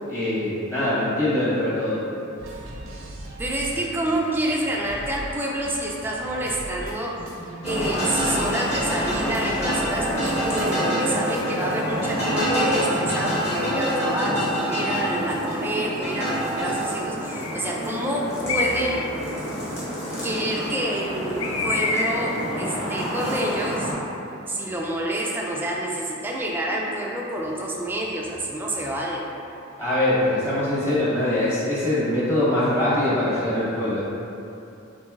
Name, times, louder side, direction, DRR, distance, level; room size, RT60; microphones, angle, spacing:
voice 1, 0.1-2.0 29.8-34.0, left 1 dB, 15° left, -10 dB, 1.0 m, -23 dB
sound 1, 2.4-11.2, right 1 dB, 75° right, 0.6 m, -39 dB
voice 2, 3.4-7.3 7.6-19.1 20.2-23.9 24.5-29.3, right 1 dB, 10° right, -2 dB, 0.3 m, -28 dB
sound 2, 7.6-23.9, equal, 30° left, 1.3 m, -27 dB
Bird, 16.1-16.5 17.3-17.8 18.5-19.1 21.4-22.4, left 3 dB, 75° left, 0.4 m, -27 dB
6.8 x 2.6 x 2.4 m, 2.8 s
head